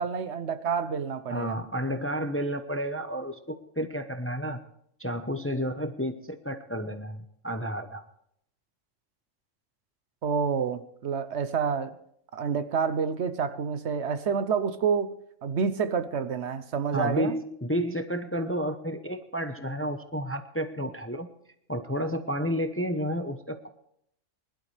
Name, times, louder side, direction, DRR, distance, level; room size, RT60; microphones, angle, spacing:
voice 1, 0.0-1.6 10.2-12.0 12.3-15.1 15.4-17.4, right 6 dB, 65° right, 1.0 m, -28 dB
voice 2, 1.3-4.6 5.0-8.0 16.9-21.3 21.7-23.7, equal, 15° left, 0.7 m, -31 dB
21.0 x 11.5 x 3.3 m
omnidirectional pair, 1.3 m